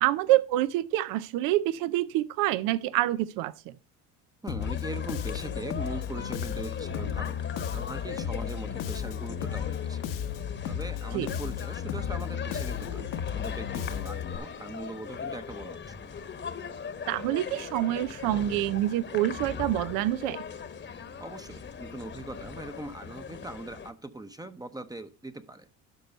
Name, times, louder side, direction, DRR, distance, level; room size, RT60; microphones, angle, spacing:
voice 1, 0.0-3.7 11.1-11.3 17.1-20.4, right 15 dB, 75° right, 0.6 m, -27 dB
voice 2, 4.4-10.0 10.6-16.0 21.2-25.7, right 2 dB, 10° right, 0.8 m, -41 dB
Bass guitar, 4.5-14.4, left 9 dB, 70° left, 1.1 m, -34 dB
sound 1, 4.6-23.9, left 6 dB, 35° left, 1.1 m, -40 dB
12.0 x 4.6 x 5.4 m
supercardioid pair, 85°, 34 cm